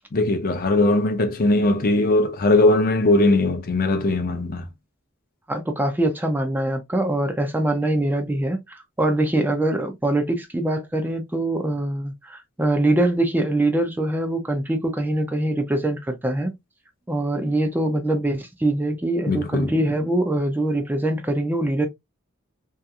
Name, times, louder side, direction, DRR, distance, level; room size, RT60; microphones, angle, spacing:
voice 1, 0.1-4.6 19.3-19.7, left 2 dB, 45° left, 0.5 m, -19 dB
voice 2, 5.5-16.5 17.1-21.9, right 1 dB, 10° right, 0.4 m, -23 dB
2.8 x 2.4 x 2.3 m
head